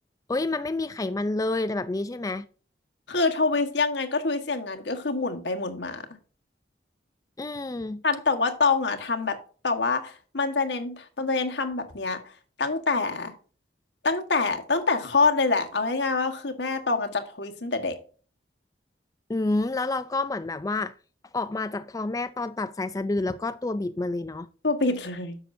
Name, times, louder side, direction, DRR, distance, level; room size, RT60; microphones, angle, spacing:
voice 1, 0.3-2.5 7.4-8.0 19.3-20.9 21.3-24.5, left 2 dB, 20° left, 0.4 m, -29 dB
voice 2, 3.1-6.0 8.0-9.3 9.6-12.2 12.6-13.3 14.0-18.0 24.6-25.4, left 3 dB, 85° left, 1.4 m, -26 dB
10.0 x 6.9 x 2.6 m
head